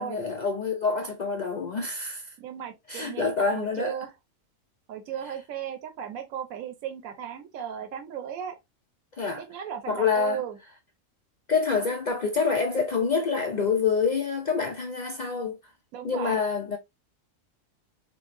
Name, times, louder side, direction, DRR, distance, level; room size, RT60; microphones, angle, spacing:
voice 1, 0.0-2.3 2.9-4.0 9.2-9.4 9.9-10.4 11.5-15.6 16.0-16.8, left 5 dB, 75° left, 0.4 m, -27 dB
voice 2, 2.4-4.1 4.9-8.6 9.4-10.6 15.9-16.4, right 8 dB, 80° right, 1.1 m, -36 dB
4.5 x 2.0 x 2.5 m
omnidirectional pair, 1.4 m